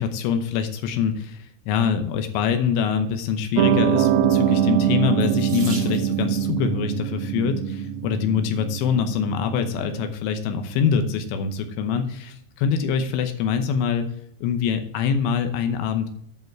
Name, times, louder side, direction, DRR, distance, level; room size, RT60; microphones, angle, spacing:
voice 1, 0.0-1.4 1.7-14.1 14.4-16.1, left 7 dB, 75° left, 6 dB, 2.9 m, -24 dB
Piano, 3.6-10.1, right 10 dB, 90° right, 3.3 m, -23 dB
Water tap faucet / Sink (filling or washing), 5.2-6.4 7.5-7.9 8.5-8.6 9.0-9.1, right 2 dB, 35° right, 1.8 m, -39 dB
10.5 x 5.7 x 4.5 m, 0.69 s
omnidirectional pair, 5.9 m